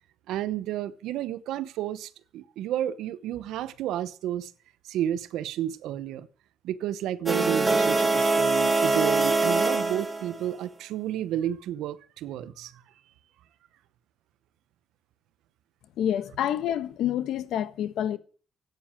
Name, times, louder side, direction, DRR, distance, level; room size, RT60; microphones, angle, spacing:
voice 1, 0.3-4.5 4.8-6.3 6.6-12.8, right 11 dB, 90° right, 0.9 m, -31 dB
sound 1, 7.3-10.5, right 3 dB, 15° right, 2.3 m, -23 dB
voice 2, 16.0-18.2, left 10 dB, 80° left, 1.3 m, -28 dB
14.5 x 9.4 x 8.9 m
cardioid pair, 90°, 0 cm